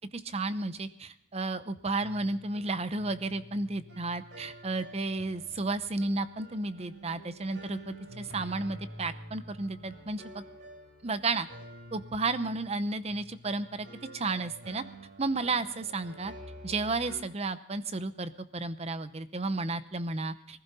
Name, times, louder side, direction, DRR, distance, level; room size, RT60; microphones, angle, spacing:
voice 1, 0.1-10.4 11.0-11.5 11.9-13.9 14.1-14.8 15.2-16.3 16.6-20.6, right 3 dB, 35° right, 12 dB, 0.8 m, -32 dB
sound 1, 2.0-17.2, right 1 dB, 80° right, 3.7 m, -48 dB
21.0 x 15.5 x 4.2 m, 0.67 s
head